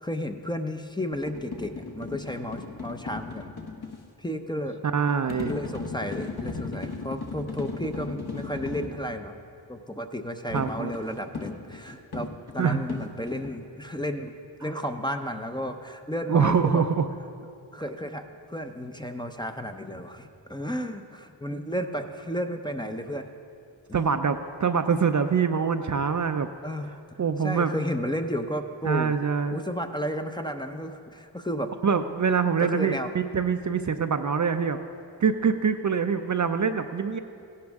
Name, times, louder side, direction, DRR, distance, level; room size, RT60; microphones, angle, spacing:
voice 1, 0.0-3.5 4.2-4.8 5.5-9.4 9.7-14.3 14.6-16.8 17.7-23.3 23.9-24.1 26.6-29.2 29.5-31.8 32.6-33.1, equal, 10° left, 6 dB, 0.6 m, -33 dB
sound 1, 1.1-4.0 5.3-9.0 10.6-13.5, left 4 dB, 50° left, 1.3 m, -36 dB
voice 2, 4.9-5.5 10.5-10.9 12.6-12.8 16.3-17.1 23.9-26.5 27.2-27.7 28.8-29.6 31.8-34.8 35.2-37.2, right 6 dB, 40° right, 7 dB, 0.5 m, -24 dB
16.0 x 11.5 x 3.6 m, 2.6 s
cardioid pair, 60°, 48 cm